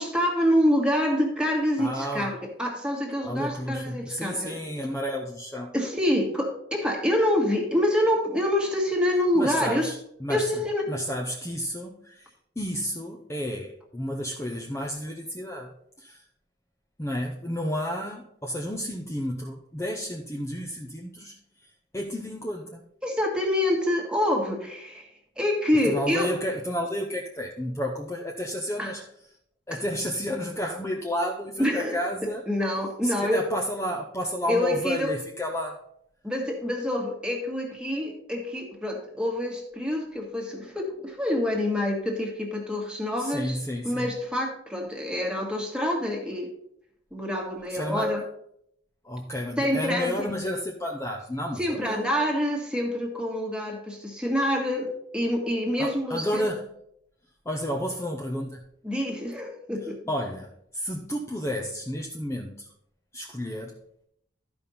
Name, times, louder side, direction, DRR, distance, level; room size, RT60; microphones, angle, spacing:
voice 1, 0.0-4.6 5.7-9.9 10.3-10.9 23.0-25.1 25.4-26.3 28.8-28.9 29.7-29.8 31.6-31.9 32.5-33.4 34.5-35.1 36.2-43.6 43.8-46.5 47.1-48.2 49.6-50.3 51.6-56.5 58.8-60.0, left 1 dB, 5° right, 0 dB, 1.7 m, -26 dB
voice 2, 1.8-2.4 3.2-5.7 9.3-10.6 10.9-16.2 17.0-22.8 25.8-29.0 29.7-32.4 33.0-35.8 43.2-44.1 47.7-48.2 49.0-52.1 55.8-56.7 57.4-58.6 60.1-62.7 63.1-63.8, equal, 15° left, 0 dB, 0.7 m, -31 dB
13.0 x 5.3 x 4.2 m, 0.72 s
head